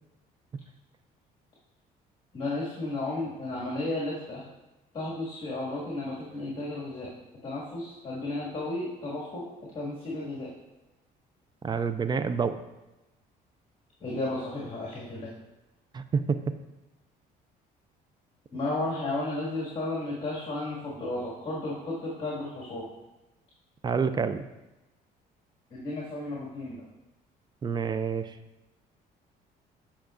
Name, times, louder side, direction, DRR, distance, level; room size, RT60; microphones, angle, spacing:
voice 1, 2.3-4.5 4.9-7.1 7.4-9.5 9.7-10.5 14.0-15.3 18.5-22.8 25.7-26.8, left 2 dB, 30° left, -6 dB, 2.0 m, -33 dB
voice 2, 11.6-12.6 15.9-16.4 23.8-24.5 27.6-28.3, right 5 dB, 25° right, 11 dB, 0.4 m, -28 dB
9.0 x 5.7 x 2.5 m, 1.0 s
cardioid pair, 110°, 17 cm